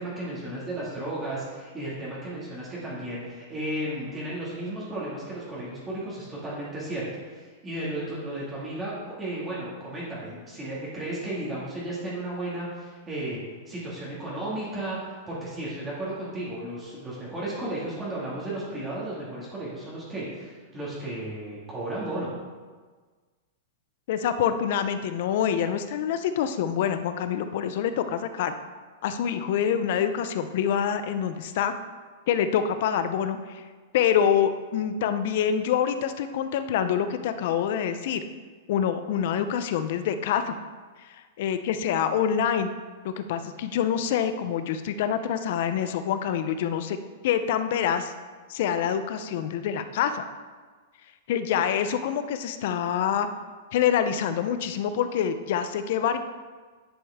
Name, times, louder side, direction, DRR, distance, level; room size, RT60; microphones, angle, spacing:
voice 1, 0.0-22.3, right 1 dB, 20° right, -7 dB, 2.1 m, -34 dB
voice 2, 24.1-28.5 29.0-31.7 32.3-33.6 33.9-38.2 38.7-40.5 41.1-42.7 43.0-47.0 47.2-48.1 48.5-50.2 51.3-53.3 53.7-56.2, left 8 dB, 60° left, 10 dB, 0.6 m, -26 dB
9.9 x 5.3 x 3.6 m, 1.4 s
hypercardioid pair, 135°, 0 cm